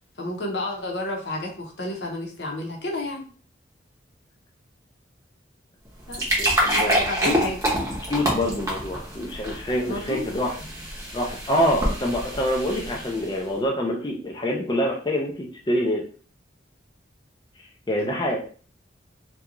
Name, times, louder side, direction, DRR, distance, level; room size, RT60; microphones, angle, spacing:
voice 1, 0.2-3.2 6.1-6.2 6.7-7.6 9.9-10.4, left 1 dB, 60° left, -1 dB, 0.7 m, -31 dB
sound 1, 5.8-13.4, equal, 15° right, 0.7 m, -27 dB
voice 2, 6.4-7.4 8.1-10.6 11.1-16.0 17.9-18.4, equal, 20° left, -1 dB, 0.4 m, -26 dB
2.4 x 2.3 x 2.9 m, 0.41 s
head